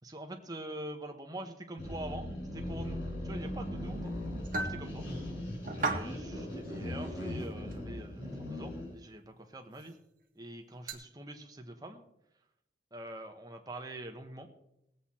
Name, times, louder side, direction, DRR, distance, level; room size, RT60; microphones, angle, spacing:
voice 1, 0.0-2.3 2.5-4.1 4.6-5.0 5.8-10.0 10.3-12.0 12.9-14.5, right 1 dB, 20° right, 4 dB, 1.2 m, -44 dB
sound 1, 1.8-9.0, left 1 dB, 90° left, 4.8 m, -39 dB
sound 2, 4.4-4.8 5.6-6.1 6.7-6.8 7.7-7.8 9.8-9.9 10.9-11.0, right 2 dB, 45° right, 1.6 m, -34 dB
19.0 x 8.0 x 4.4 m, 0.81 s
head